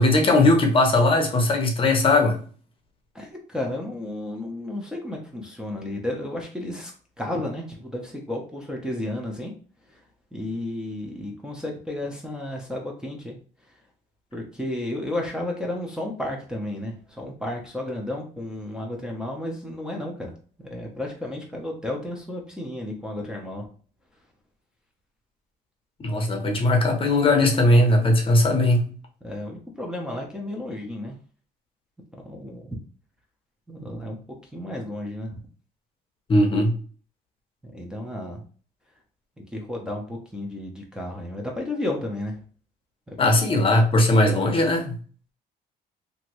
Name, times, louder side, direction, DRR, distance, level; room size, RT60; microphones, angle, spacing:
voice 1, 0.0-2.4 26.0-28.9 36.3-36.7 43.2-45.0, left 2 dB, 30° left, 0.8 m, -19 dB
voice 2, 3.1-6.9 7.2-9.5 9.8-10.0 10.3-13.4 13.6-13.8 14.3-20.3 20.6-23.7 29.2-31.2 32.1-32.8 33.7-34.2 34.5-35.4 37.6-38.4 39.4-42.4 43.1-43.2, left 1 dB, 5° right, 0.6 m, -32 dB
2.8 x 2.6 x 3.0 m
cardioid pair, 110°, 17 cm